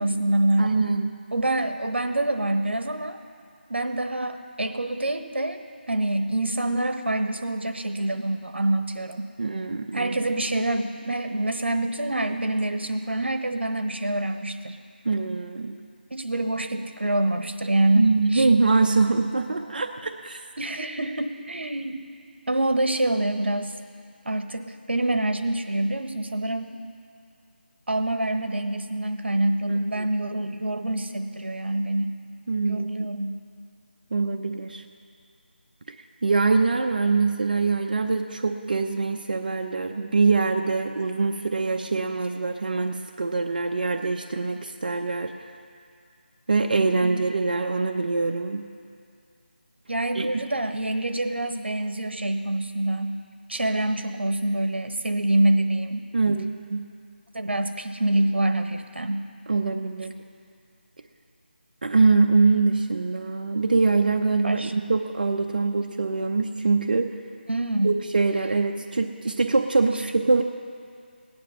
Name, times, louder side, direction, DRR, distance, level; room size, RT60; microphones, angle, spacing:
voice 1, 0.0-0.7 1.3-3.2 3.7-9.3 9.9-14.8 16.1-18.5 20.6-22.0 22.5-23.7 24.2-26.8 27.9-32.2 32.6-33.4 47.0-47.2 49.9-53.2 53.5-56.1 57.3-59.3 64.4-64.7 67.5-67.9, right 1 dB, 85° right, 7 dB, 1.1 m, -26 dB
voice 2, 0.6-1.2 9.4-10.1 15.0-15.8 17.9-20.4 29.7-30.1 32.5-33.1 34.1-34.8 36.2-45.5 46.5-48.6 50.1-50.4 56.1-56.8 59.5-60.1 61.8-67.1 67.8-70.4, right 3 dB, 55° right, 4 dB, 0.7 m, -23 dB
17.0 x 10.5 x 5.6 m, 2.4 s
figure-of-eight pair, 165°, 6 cm